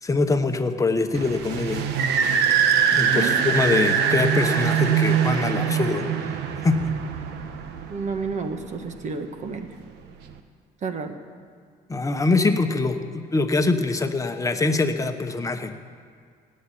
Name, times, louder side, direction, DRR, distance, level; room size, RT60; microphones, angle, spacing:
voice 1, 0.0-1.9 2.9-6.1 6.6-7.0 11.9-15.7, left 3 dB, 20° left, 7 dB, 1.1 m, -23 dB
sound 1, 1.1-8.5, right 7 dB, 85° right, 1.2 m, -23 dB
voice 2, 7.9-9.8 10.8-11.2, right 5 dB, 45° right, 7 dB, 1.5 m, -30 dB
17.5 x 7.7 x 9.9 m, 2.2 s
cardioid pair, 110°, 17 cm